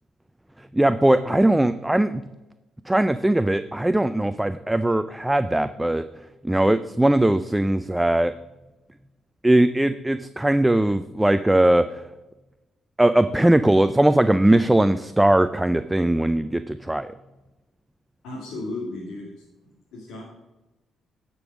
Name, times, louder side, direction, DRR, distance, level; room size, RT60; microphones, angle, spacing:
voice 1, 0.7-2.2 2.9-6.0 6.4-8.3 9.4-11.9 13.0-17.1, right 1 dB, 10° right, 11 dB, 0.4 m, -20 dB
voice 2, 18.2-19.3 19.6-20.2, left 2 dB, 85° left, -4 dB, 2.2 m, -35 dB
10.5 x 5.4 x 6.2 m, 1.0 s
cardioid pair, 90°, 0 cm